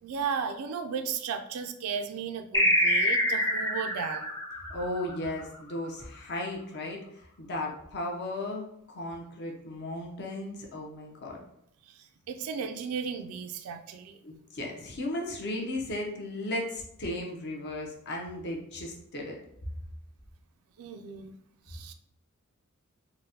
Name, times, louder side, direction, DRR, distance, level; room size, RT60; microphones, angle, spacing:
voice 1, 0.0-4.3 11.9-14.2 20.8-21.3 21.7-21.9, right 6 dB, 85° right, 7 dB, 0.3 m, -35 dB
sound 1, 2.5-5.6, equal, 15° left, 0.5 m, -26 dB
voice 2, 4.7-7.0 7.4-11.4 14.2-19.4, left 1 dB, 50° left, 0 dB, 0.7 m, -35 dB
3.8 x 2.1 x 2.7 m, 0.74 s
head